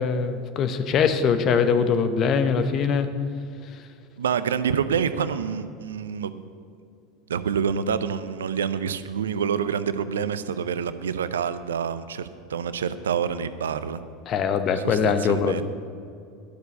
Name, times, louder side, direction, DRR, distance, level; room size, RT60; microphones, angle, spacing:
voice 1, 0.0-3.1 14.3-15.6, left 6 dB, 45° left, 9 dB, 1.0 m, -22 dB
voice 2, 4.2-6.4 7.3-14.0 14.8-15.6, right 7 dB, 75° right, 13 dB, 0.5 m, -27 dB
11.5 x 6.8 x 8.3 m, 2.4 s
figure-of-eight pair, 75°, 0 cm